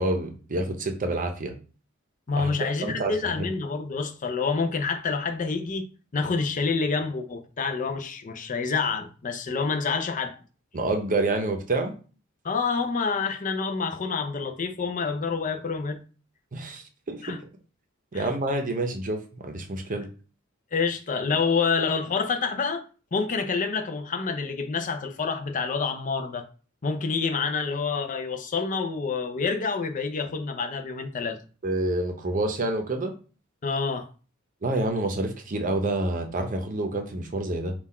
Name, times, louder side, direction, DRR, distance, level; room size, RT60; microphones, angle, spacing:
voice 1, 0.0-1.5 2.4-2.5 2.8-3.5 10.7-11.9 16.5-17.5 18.1-20.1 31.6-33.1 34.6-37.7, right 2 dB, 40° right, 0.7 m, -28 dB
voice 2, 2.3-5.9 6.1-10.4 12.4-16.0 17.2-17.4 18.1-18.3 20.7-22.8 23.1-26.4 26.8-31.4 33.6-34.1, left 4 dB, 40° left, 0.6 m, -27 dB
3.9 x 2.4 x 4.2 m
head